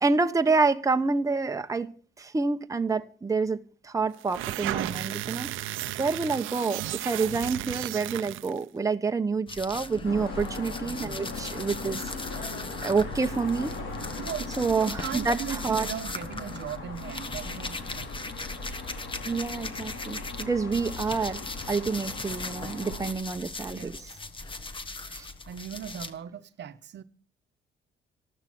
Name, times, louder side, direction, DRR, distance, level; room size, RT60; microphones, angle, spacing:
voice 1, 0.0-1.9 2.2-5.5 6.0-12.0 12.3-12.5 12.8-13.7 14.6-15.9 19.3-21.4 21.7-23.9 25.1-25.3, right 4 dB, 15° right, 0.9 m, -28 dB
sound 1, 4.2-8.6, right 15 dB, 85° right, 0.6 m, -34 dB
sound 2, 9.5-20.4 20.7-26.1, left 3 dB, 25° left, 1.3 m, -39 dB
sound 3, 10.0-23.1, left 3 dB, 80° left, 3.7 m, -39 dB
voice 2, 10.8-11.3 14.2-18.1 23.7-24.2 25.5-27.0, right 9 dB, 65° right, 1.0 m, -39 dB
13.5 x 12.0 x 6.0 m
cardioid pair, 90°, 20 cm